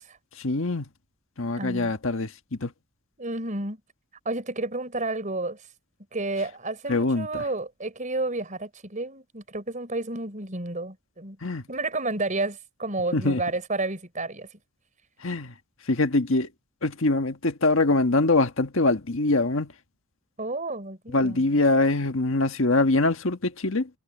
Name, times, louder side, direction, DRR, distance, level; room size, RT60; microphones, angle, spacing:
voice 1, 0.4-0.9 1.4-2.7 6.9-7.4 11.4-11.6 13.1-13.4 15.2-15.5 15.9-16.5 16.8-19.7 21.1-23.9, left 2 dB, 70° left, 1.6 m, -23 dB
voice 2, 1.6-1.9 3.2-3.8 4.3-5.6 6.1-11.4 11.7-14.5 20.4-21.4, right 2 dB, 40° right, 5.2 m, -31 dB
head